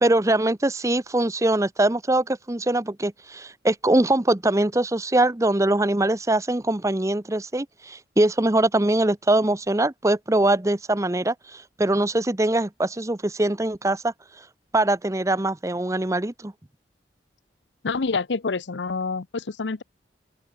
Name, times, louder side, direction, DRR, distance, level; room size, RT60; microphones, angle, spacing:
voice 1, 0.0-14.1 14.7-16.5, right 1 dB, 15° right, 0.8 m, -22 dB
voice 2, 17.8-19.8, left 4 dB, 80° left, 0.8 m, -27 dB
open air
head